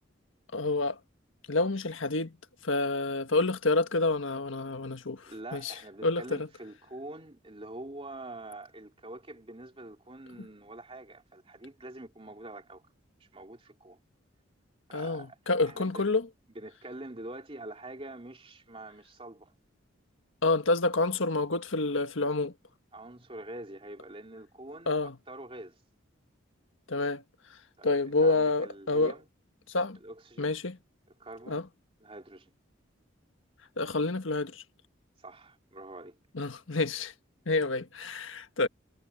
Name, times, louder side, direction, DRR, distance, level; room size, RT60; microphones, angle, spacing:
voice 1, 0.5-1.0 1.5-2.3 2.6-5.7 6.0-6.5 14.9-16.3 20.4-22.5 24.9-25.1 26.9-27.2 27.8-29.1 29.7-30.0 30.4-30.8 31.5-31.6 33.8-34.6 36.3-37.1 37.5-38.7, left 3 dB, 80° left, 1.5 m, -28 dB
voice 2, 5.3-12.8 13.2-14.0 14.9-15.4 15.6-16.1 16.5-19.5 22.9-25.8 27.8-29.3 30.0-30.5 31.2-31.6 32.0-32.5 35.2-36.2, right 1 dB, 30° right, 2.6 m, -45 dB
head